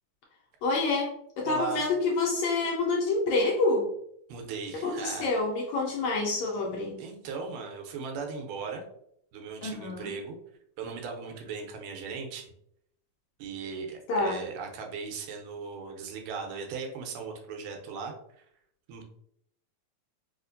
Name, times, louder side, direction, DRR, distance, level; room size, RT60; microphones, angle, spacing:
voice 1, 0.6-3.9 4.8-6.9 9.6-10.1 14.1-14.4, left 3 dB, 80° left, -2 dB, 1.7 m, -27 dB
voice 2, 1.5-1.8 4.3-5.3 7.0-8.9 9.3-10.4 10.8-12.5 13.4-18.4 18.9-19.0, right 5 dB, 85° right, 3 dB, 2.2 m, -38 dB
4.9 x 2.4 x 2.5 m, 0.71 s
omnidirectional pair, 3.7 m